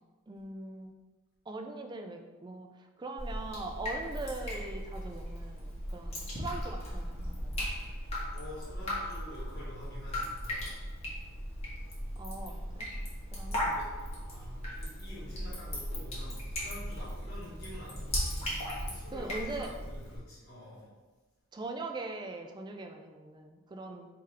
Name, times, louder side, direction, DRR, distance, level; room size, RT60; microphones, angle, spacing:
voice 1, 0.3-0.9 1.5-2.7 3.0-7.7 12.2-12.9 13.3-13.8 19.1-19.7 21.5-24.1, right 2 dB, 20° right, 4 dB, 0.3 m, -41 dB
Drip, 3.2-20.2, equal, 30° left, 1.2 m, -37 dB
voice 2, 8.3-10.7 13.6-13.9 14.3-18.2 18.8-20.9, left 1 dB, 50° left, -8 dB, 1.3 m, -48 dB
3.8 x 2.8 x 4.8 m, 1.3 s
head